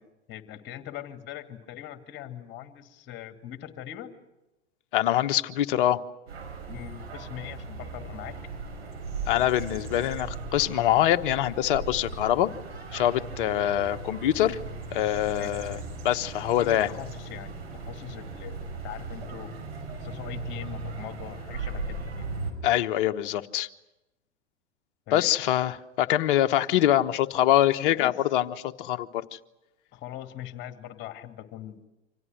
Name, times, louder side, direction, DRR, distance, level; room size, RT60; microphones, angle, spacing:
voice 1, 0.3-4.2 6.7-8.4 15.3-15.5 16.6-19.5 19.9-22.3 25.1-25.3 27.9-28.1 29.9-31.9, left 12 dB, 30° left, 7 dB, 2.5 m, -41 dB
voice 2, 4.9-6.0 9.3-12.5 12.9-14.6 14.9-15.8 16.0-16.9 22.6-23.7 25.1-29.4, left 12 dB, 50° left, 10 dB, 1.2 m, -24 dB
sound 1, 6.3-22.5, right 3 dB, 65° right, 6.0 m, -38 dB
28.5 x 26.0 x 6.4 m, 0.98 s
figure-of-eight pair, 90°, 35 cm